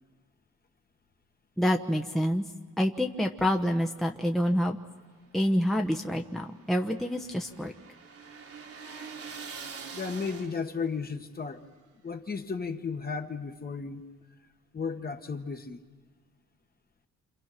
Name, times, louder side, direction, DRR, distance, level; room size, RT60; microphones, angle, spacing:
voice 1, 1.6-2.4 2.8-4.8 5.3-7.7, equal, ahead, 2 dB, 1.1 m, -27 dB
sound 1, 5.4-10.9, right 5 dB, 50° right, 2.0 m, -45 dB
voice 2, 9.9-11.6 12.0-14.0 14.7-15.8, left 5 dB, 30° left, 5 dB, 1.7 m, -34 dB
28.0 x 27.5 x 6.0 m, 1.4 s
cardioid pair, 90°, 30 cm